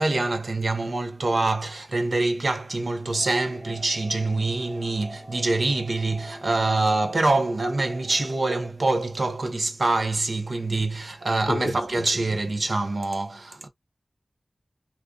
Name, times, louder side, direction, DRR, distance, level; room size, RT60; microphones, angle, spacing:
voice 1, 0.0-13.7, right 2 dB, 65° right, 0.6 m, -25 dB
sound 1, 3.1-8.7, equal, 5° left, 0.9 m, -43 dB
voice 2, 11.5-12.4, left 3 dB, 80° left, 0.4 m, -34 dB
2.4 x 2.2 x 2.3 m
wide cardioid pair, 55°, 0 cm